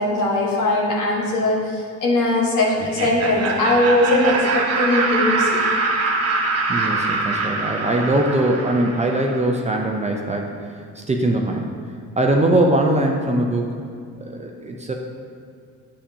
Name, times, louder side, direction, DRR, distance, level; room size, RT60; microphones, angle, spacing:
voice 1, 0.0-5.6, left 2 dB, 80° left, -4 dB, 1.5 m, -20 dB
Laughter, 2.8-9.6, right 3 dB, 55° right, 1.1 m, -23 dB
voice 2, 6.7-10.5 10.9-11.6 12.2-13.7 14.2-14.9, right 1 dB, 25° right, 1 dB, 0.6 m, -21 dB
8.4 x 5.8 x 2.8 m, 2.2 s
cardioid pair, 90°, 30 cm